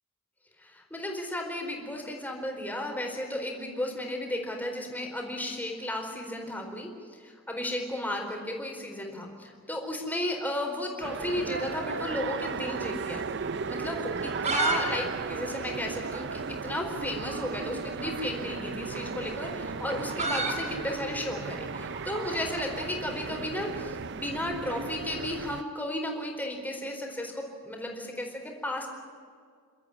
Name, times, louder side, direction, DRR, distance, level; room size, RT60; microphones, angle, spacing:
voice 1, 0.6-13.4 13.7-28.9, left 1 dB, 10° left, 2 dB, 4.3 m, -34 dB
sound 1, 11.0-25.6, right 5 dB, 60° right, 0.6 m, -35 dB
sound 2, 11.9-13.2 13.4-13.5 14.1-14.8 15.1-15.2 15.4-15.5 16.1-16.2 17.4-17.6 18.7-22.9, right 3 dB, 35° right, 6.3 m, -32 dB
29.0 x 13.5 x 9.9 m, 2.1 s
head